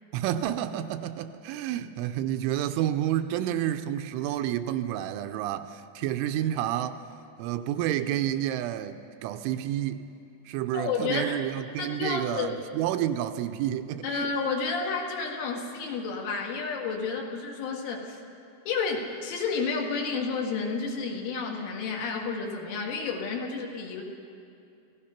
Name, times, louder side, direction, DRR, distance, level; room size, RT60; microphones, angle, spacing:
voice 1, 0.1-7.0 7.4-10.1 10.5-14.3, right 12 dB, 85° right, 9 dB, 3.0 m, -30 dB
voice 2, 10.7-11.4 11.8-12.6 14.0-18.2 18.7-24.0, left 4 dB, 75° left, 0 dB, 4.4 m, -31 dB
28.0 x 17.0 x 5.8 m, 2.6 s
omnidirectional pair, 5.7 m